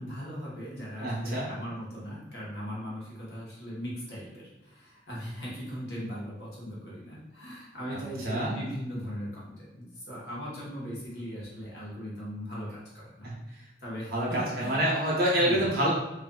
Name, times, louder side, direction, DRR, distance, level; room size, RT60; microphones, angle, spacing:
voice 1, 0.0-13.3 13.8-14.8 15.4-15.7, equal, 65° left, -6 dB, 1.0 m, -39 dB
voice 2, 1.0-1.5 7.9-8.5 13.2-13.3 14.1-15.9, right 1 dB, 55° right, -4 dB, 0.7 m, -27 dB
2.5 x 2.4 x 2.2 m, 0.94 s
head